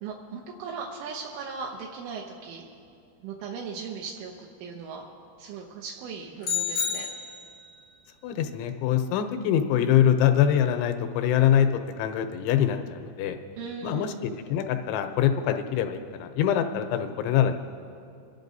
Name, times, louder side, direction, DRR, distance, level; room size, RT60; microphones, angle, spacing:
voice 1, 0.0-2.6 3.2-4.3 4.6-5.0 5.4-7.1 13.6-14.2, right 5 dB, 80° right, -2 dB, 3.2 m, -38 dB
sound 1, 6.4-7.7, left 6 dB, 50° left, 1.0 m, -30 dB
voice 2, 8.2-13.4 13.8-17.6, left 9 dB, 80° left, 6 dB, 2.9 m, -24 dB
30.0 x 11.0 x 2.7 m, 2.4 s
omnidirectional pair, 5.6 m